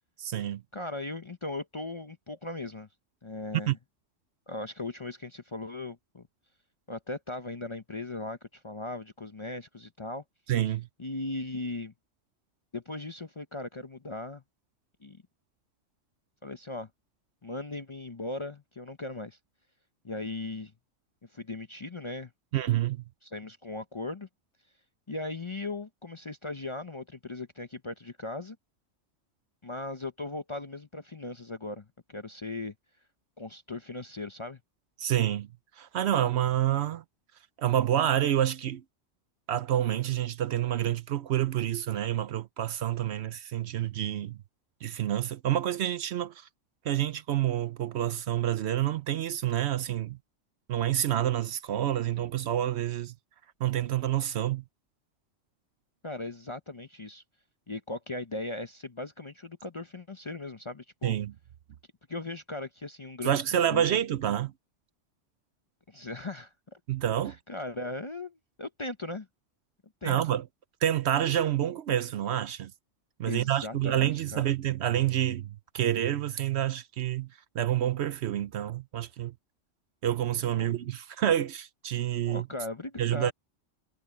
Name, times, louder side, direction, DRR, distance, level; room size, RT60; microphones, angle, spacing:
voice 1, 0.2-0.6 3.7-3.8 10.5-10.9 22.5-23.0 35.0-35.5 35.8-37.0 37.6-38.8 39.5-44.4 44.8-46.5 46.8-50.2 50.7-53.1 53.6-54.6 61.0-61.3 63.2-64.5 66.9-67.4 70.0-70.4 70.8-72.7 73.2-77.3 77.5-79.3 80.0-82.5 83.0-83.3, right 11 dB, 65° right, 0.8 m, -28 dB
voice 2, 0.7-2.9 3.2-3.8 4.5-6.3 6.9-10.2 11.0-11.9 12.7-14.4 15.0-15.2 16.4-16.9 17.4-19.4 20.0-20.7 21.3-22.3 23.2-24.3 25.1-28.6 29.6-32.7 33.4-34.6 56.0-57.2 57.7-61.2 62.1-64.0 65.9-66.8 67.5-69.3 70.0-70.2 73.3-74.4 80.6-80.7 82.3-83.3, left 2 dB, 30° left, 0.6 m, -38 dB
omnidirectional pair, 1.3 m